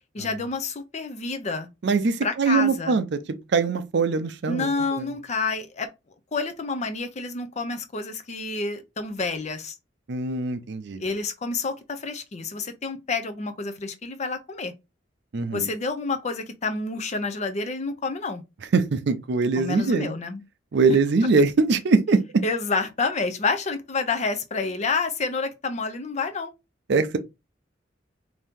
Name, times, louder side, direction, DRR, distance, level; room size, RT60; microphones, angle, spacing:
voice 1, 0.1-1.7 2.2-3.0 4.5-5.9 6.3-9.7 11.0-14.7 15.5-18.4 19.6-20.4 21.2-21.3 22.4-26.5, left 4 dB, 40° left, 0.5 m, -29 dB
voice 2, 1.8-3.2 3.5-4.7 5.0-5.1 10.1-11.0 15.3-15.7 18.7-20.1 20.7-22.2 26.9-27.2, right 4 dB, 65° right, 0.5 m, -22 dB
2.8 x 2.6 x 3.5 m
head